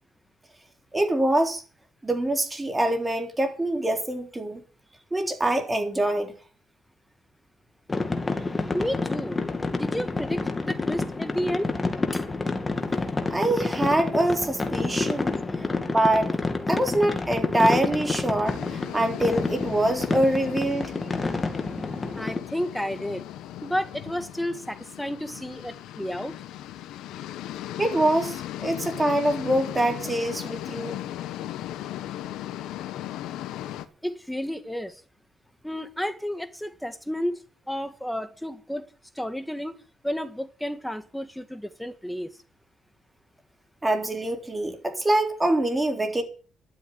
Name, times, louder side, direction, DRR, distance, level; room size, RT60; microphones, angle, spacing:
voice 1, 0.9-1.6 2.0-4.6 5.1-6.3 13.3-15.4 15.9-16.3 16.7-20.9 27.8-31.0 43.8-46.2, right 1 dB, 15° right, 3.8 m, -24 dB
sound 1, 7.9-22.4, left 3 dB, 25° left, 2.6 m, -29 dB
voice 2, 8.7-9.4 9.7-11.7 12.1-12.2 22.2-23.3 23.6-26.4 34.0-35.0 35.6-39.8 40.0-42.3, equal, 5° left, 1.7 m, -31 dB
sound 2, 18.4-33.8, left 13 dB, 90° left, 1.2 m, -37 dB
12.5 x 8.0 x 9.6 m
cardioid pair, 90°, 0 cm